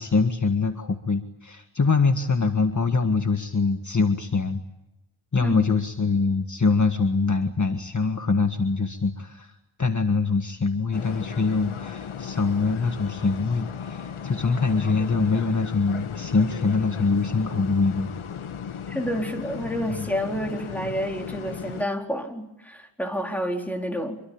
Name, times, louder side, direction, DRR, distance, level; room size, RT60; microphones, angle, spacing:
voice 1, 0.0-4.6 5.3-18.1 20.0-20.1, left 4 dB, 35° left, 6 dB, 1.7 m, -24 dB
sound 1, 10.9-21.9, left 7 dB, 80° left, 1.5 m, -36 dB
voice 2, 18.9-24.2, equal, 5° left, 3 dB, 4.2 m, -29 dB
26.5 x 23.5 x 8.8 m, 0.89 s
wide cardioid pair, 120°, 49 cm